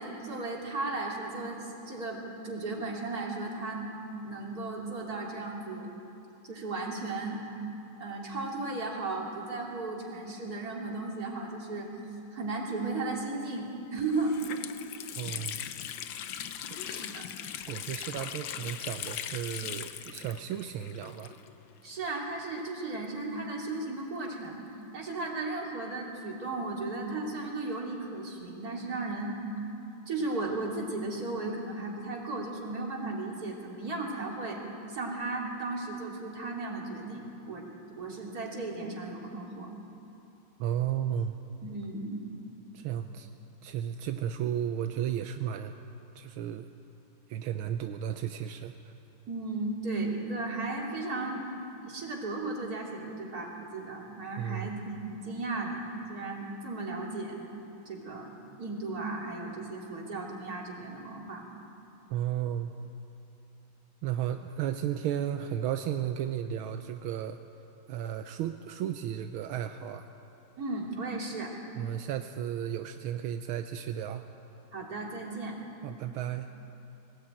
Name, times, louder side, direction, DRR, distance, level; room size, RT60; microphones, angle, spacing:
voice 1, 0.0-3.9 4.2-5.9 6.4-7.4 8.0-11.9 12.3-14.6 16.9-17.2 21.8-24.6 24.9-29.4 30.1-34.6 34.9-37.7 38.0-39.7 41.6-42.2 49.3-51.4 51.8-55.8 56.1-57.4 57.8-58.3 58.6-61.4 70.6-71.5 74.7-75.6, right 2 dB, 45° right, -2 dB, 3.5 m, -35 dB
Water tap faucet, 13.5-13.6 14.0-21.7 22.0-22.1 22.9-24.5, left 9 dB, 70° left, 1.6 m, -40 dB
voice 2, 15.2-15.6 16.6-17.1 17.7-21.4 40.6-41.3 42.7-43.3 43.6-45.8 46.1-46.7 47.3-48.7 54.4-54.7 62.1-62.7 64.0-67.4 67.9-70.1 71.8-74.2 75.8-76.5, right 10 dB, 85° right, 7 dB, 1.6 m, -34 dB
20.5 x 18.5 x 9.1 m, 2.8 s
omnidirectional pair, 2.3 m